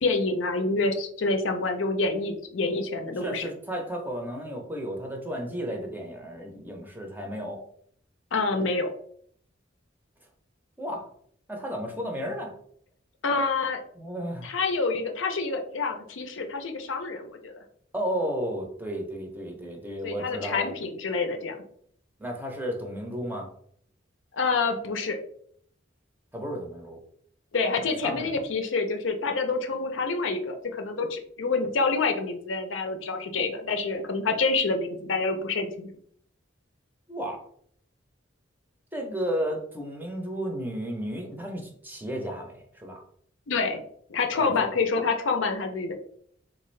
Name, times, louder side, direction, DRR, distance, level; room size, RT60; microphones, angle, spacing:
voice 1, 0.0-3.5 8.3-8.9 13.2-13.8 14.4-17.5 20.0-21.6 24.3-25.2 27.5-35.9 43.5-43.8 44.1-45.9, left 3 dB, 75° left, 5 dB, 0.5 m, -27 dB
voice 2, 3.2-7.6 10.8-11.1 11.5-12.5 13.9-14.5 17.9-20.7 22.2-23.5 26.3-27.0 28.0-28.3 37.1-37.4 38.9-43.0 44.4-44.8, equal, 10° right, 1 dB, 0.6 m, -33 dB
3.6 x 2.5 x 3.1 m, 0.63 s
head